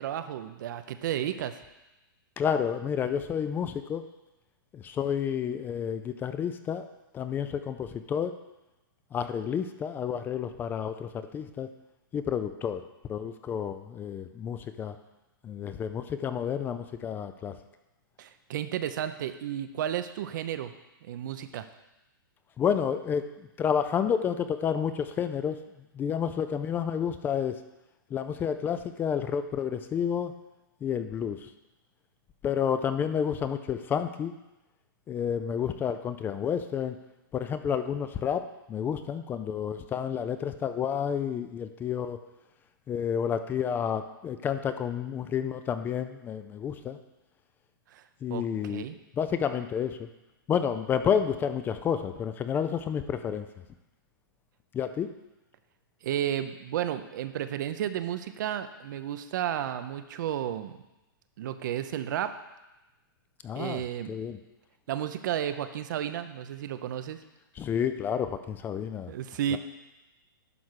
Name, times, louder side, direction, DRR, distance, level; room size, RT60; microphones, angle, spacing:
voice 1, 0.0-1.6 18.2-20.7 21.0-21.7 47.9-48.0 48.3-49.0 56.0-60.8 61.4-62.3 63.5-64.2 64.9-67.2 69.1-69.6, right 10 dB, 60° right, 10 dB, 0.6 m, -32 dB
voice 2, 2.4-4.0 4.7-6.9 7.1-8.3 9.1-11.7 12.1-12.8 13.1-15.0 15.4-17.6 22.6-25.6 25.9-27.6 28.1-30.3 30.8-31.5 32.4-34.3 35.1-37.0 37.3-42.2 42.9-47.0 48.2-48.8 49.2-50.1 50.5-53.5 54.7-55.1 63.4-63.8 64.1-64.4 67.6-69.1 69.5-69.6, left 8 dB, 15° left, 10 dB, 0.4 m, -30 dB
10.5 x 3.6 x 6.3 m, 1.0 s
hypercardioid pair, 135°, 12 cm